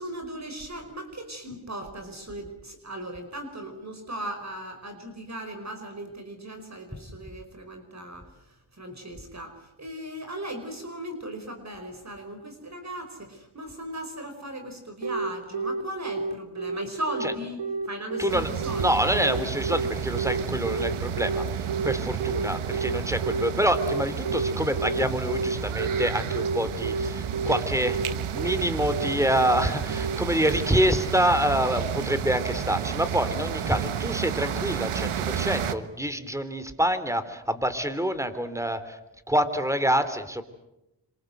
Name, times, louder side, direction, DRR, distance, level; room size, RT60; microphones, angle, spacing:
voice 1, 0.0-8.3 8.8-19.2, right 1 dB, 35° right, 6 dB, 5.2 m, -37 dB
Telephone, 15.0-31.2, right 4 dB, 65° right, 4.0 m, -30 dB
voice 2, 18.2-18.5 18.8-28.0 28.3-39.0 39.3-40.4, equal, 5° right, 12 dB, 3.3 m, -26 dB
sound 1, 18.3-35.7, right 8 dB, 85° right, 1.5 m, -32 dB
26.5 x 26.0 x 8.0 m, 0.91 s
cardioid pair, 60°, 48 cm